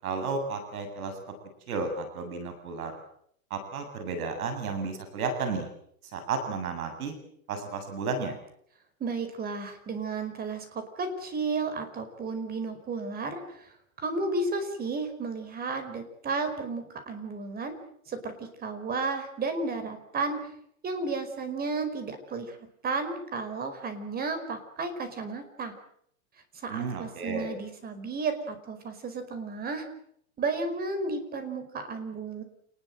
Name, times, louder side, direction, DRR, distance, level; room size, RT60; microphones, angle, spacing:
voice 1, 0.0-1.1 1.7-2.9 3.5-5.7 6.1-7.1 7.5-8.4 26.7-27.5, right 4 dB, 75° right, 8 dB, 7.9 m, -32 dB
voice 2, 9.0-17.7 18.1-20.4 20.8-22.6 22.8-25.7 26.5-29.8 30.4-32.4, right 3 dB, 20° right, 8 dB, 5.0 m, -33 dB
28.5 x 20.0 x 7.9 m, 0.68 s
hypercardioid pair, 145°, 44 cm